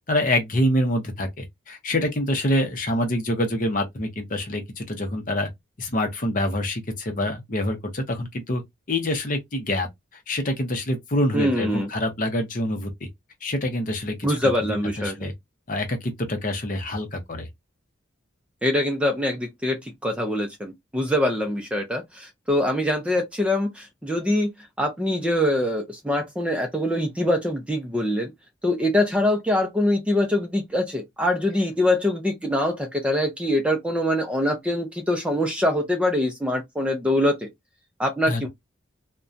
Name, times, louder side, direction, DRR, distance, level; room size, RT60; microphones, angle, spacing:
voice 1, 0.1-5.5 5.8-8.6 8.9-9.9 10.3-13.1 13.4-15.3 15.7-17.5 38.3-38.5, left 1 dB, 40° left, 0.7 m, -26 dB
voice 2, 11.3-11.9 14.2-15.3 18.6-28.3 28.6-37.5 38.0-38.5, left 1 dB, 5° right, 0.4 m, -24 dB
2.7 x 2.2 x 2.3 m
head